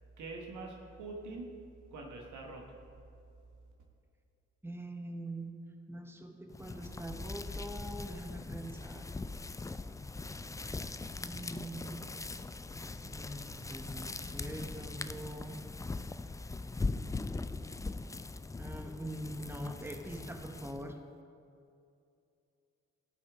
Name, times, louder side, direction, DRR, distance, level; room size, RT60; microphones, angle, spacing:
voice 1, 0.2-1.5 1.9-2.8, right 3 dB, 75° right, 1 dB, 1.3 m, -44 dB
voice 2, 4.6-9.1 11.2-12.0 13.0-15.6 18.6-21.0, right 1 dB, 10° right, 4 dB, 1.1 m, -43 dB
sound 1, 6.5-21.0, left 3 dB, 10° left, 0.3 m, -41 dB
14.0 x 5.6 x 3.6 m, 2.5 s
hypercardioid pair, 40°, 30 cm